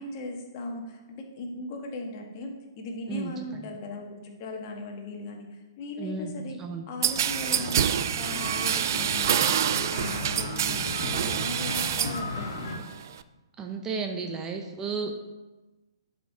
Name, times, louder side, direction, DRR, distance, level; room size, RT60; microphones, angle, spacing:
voice 1, 0.0-6.6 6.9-12.9, left 2 dB, 40° left, 2 dB, 1.4 m, -38 dB
voice 2, 3.1-3.7 6.0-6.3 6.6-6.9 13.6-15.1, right 5 dB, 20° right, 4 dB, 0.7 m, -33 dB
sound 1, 7.0-12.7, left 2 dB, 60° left, 1.6 m, -36 dB
sound 2, 7.0-12.2 12.6-13.2, right 10 dB, 50° right, 0.3 m, -27 dB
11.0 x 5.3 x 2.8 m, 1.1 s
figure-of-eight pair, 120°, 2 cm